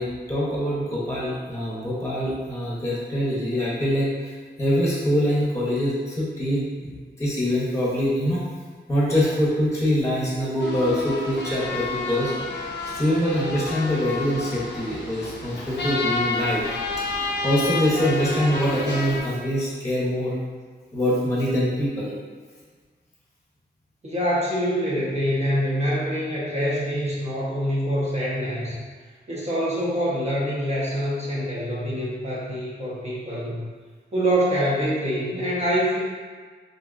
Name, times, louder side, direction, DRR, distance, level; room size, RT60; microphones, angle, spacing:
voice 1, 0.0-4.3 4.6-8.4 8.9-12.3 12.9-16.6 17.4-20.3 20.9-22.1, equal, 15° left, -7 dB, 0.8 m, -24 dB
sound 1, 10.6-19.2, left 3 dB, 80° left, 0.5 m, -30 dB
voice 2, 24.0-28.8 29.3-33.6 34.1-36.0, equal, 40° right, -7 dB, 0.8 m, -25 dB
3.4 x 2.7 x 2.5 m, 1.5 s
wide cardioid pair, 110°, 18 cm